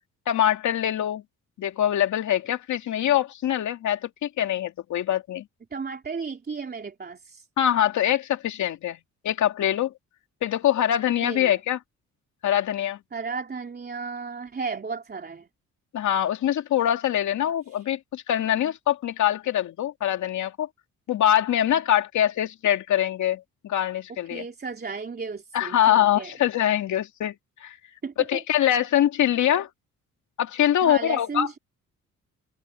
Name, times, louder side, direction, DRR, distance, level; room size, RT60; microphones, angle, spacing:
voice 1, 0.3-1.2 1.6-5.5 7.6-9.0 9.2-9.9 10.4-11.8 12.4-13.0 15.9-20.7 21.1-24.4 25.5-27.3 27.6-27.8 28.3-29.7 30.4-31.5, left 11 dB, 70° left, 2.5 m, -23 dB
voice 2, 5.7-7.5 11.2-11.6 13.1-15.5 17.7-17.9 24.1-26.3 28.0-28.4 30.8-31.6, right 5 dB, 30° right, 3.2 m, -34 dB
cardioid pair, 90°, 30 cm